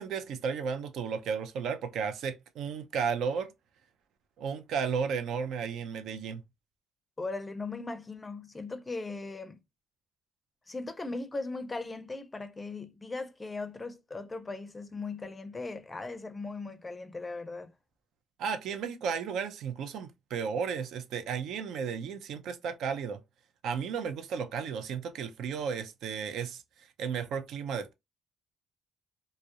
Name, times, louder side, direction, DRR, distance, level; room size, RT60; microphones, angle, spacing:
voice 1, 0.0-3.5 4.4-6.4 18.4-23.2 23.6-26.6 27.0-27.9, right 6 dB, 80° right, 0.4 m, -33 dB
voice 2, 7.2-9.6 10.7-17.7, left 3 dB, 20° left, 0.4 m, -38 dB
2.3 x 2.0 x 2.7 m
cardioid pair, 85°, 0 cm